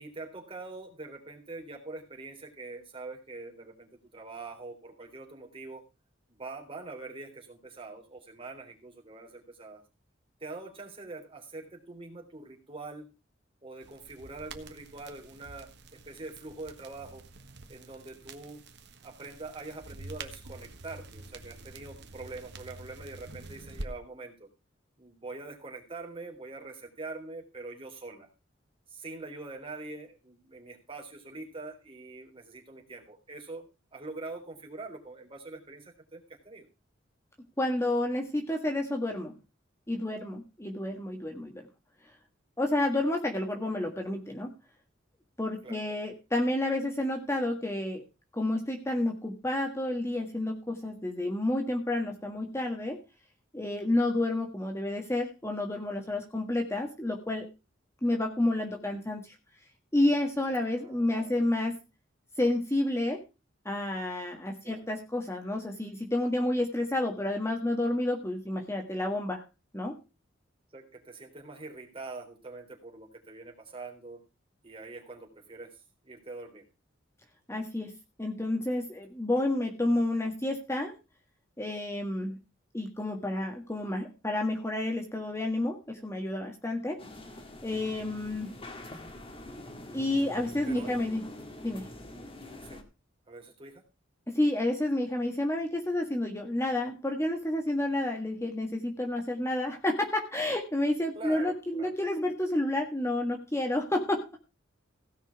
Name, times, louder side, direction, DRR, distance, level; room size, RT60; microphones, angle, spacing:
voice 1, 0.0-5.8 6.3-9.8 10.4-13.1 13.6-17.2 17.7-18.6 19.0-24.5 25.0-28.3 28.9-33.7 33.9-36.7 45.6-45.8 60.8-61.4 64.6-64.9 70.7-74.2 74.6-76.6 90.7-90.9 92.7-92.8 93.3-93.8 101.2-101.9, right 3 dB, 30° right, 0 dB, 3.6 m, -44 dB
sound 1, 13.8-23.9, right 2 dB, 60° right, 1.5 m, -47 dB
voice 2, 37.6-39.3 39.9-41.5 42.6-44.5 45.4-48.0 48.3-53.0 53.5-57.5 58.0-59.3 59.9-61.8 62.4-63.2 63.6-69.4 69.7-70.0 77.5-80.9 81.6-82.4 82.7-87.0 87.6-88.5 89.9-91.3 91.6-91.9 94.3-104.2, left 1 dB, 15° left, 2 dB, 1.7 m, -30 dB
sound 2, 87.0-92.8, left 1 dB, 30° left, 1.9 m, -45 dB
16.5 x 5.9 x 5.9 m, 0.29 s
head